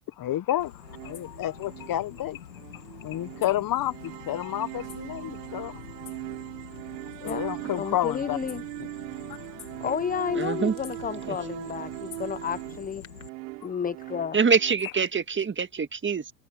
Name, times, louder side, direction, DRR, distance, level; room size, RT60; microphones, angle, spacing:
voice 1, 0.2-2.4 3.0-5.8 7.2-8.4, left 13 dB, 45° left, 1.5 m, -30 dB
sound 1, 0.6-13.3, left 9 dB, 90° left, 2.6 m, -46 dB
sound 2, 0.8-14.7, right 26 dB, 70° right, 4.0 m, -40 dB
voice 2, 7.8-8.6 9.8-13.0 13.6-14.4, left 7 dB, 15° left, 0.7 m, -31 dB
voice 3, 10.4-10.7 11.3-11.4 14.3-16.3, right 5 dB, 25° right, 1.8 m, -25 dB
hypercardioid pair, 70°, 49 cm